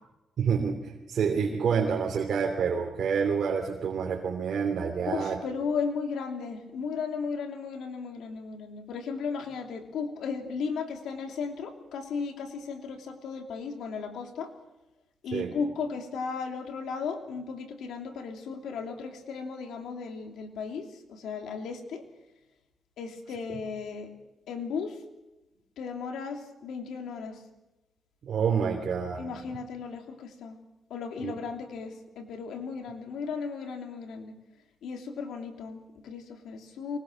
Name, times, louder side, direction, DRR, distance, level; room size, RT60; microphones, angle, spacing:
voice 1, 0.4-5.4 15.3-15.6 28.3-29.2 31.2-31.3, right 6 dB, 65° right, 0 dB, 3.0 m, -28 dB
voice 2, 5.0-14.5 15.2-22.0 23.0-24.1 24.5-25.0 25.8-27.4 29.2-30.6 30.9-34.3 34.8-37.0, left 5 dB, 85° left, 4 dB, 2.9 m, -35 dB
24.0 x 19.5 x 6.4 m, 1.0 s
cardioid pair, 90°, 0 cm